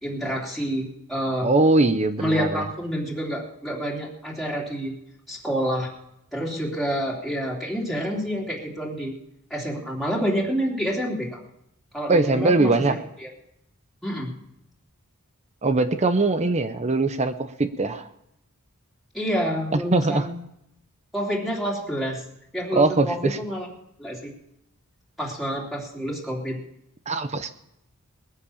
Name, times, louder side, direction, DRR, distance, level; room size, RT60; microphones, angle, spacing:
voice 1, 0.0-1.5 2.2-4.9 5.3-5.9 6.3-9.2 9.5-11.4 11.9-13.0 13.2-13.3 14.0-14.3 19.1-20.3 21.1-22.2 22.5-23.7 24.0-24.3 25.2-26.6, equal, ahead, -4 dB, 3.1 m, -28 dB
voice 2, 1.4-2.7 12.1-12.9 15.6-18.1 19.7-20.3 22.7-23.4 27.1-27.5, right 2 dB, 30° right, 10 dB, 0.8 m, -21 dB
20.0 x 9.8 x 7.2 m, 0.79 s
head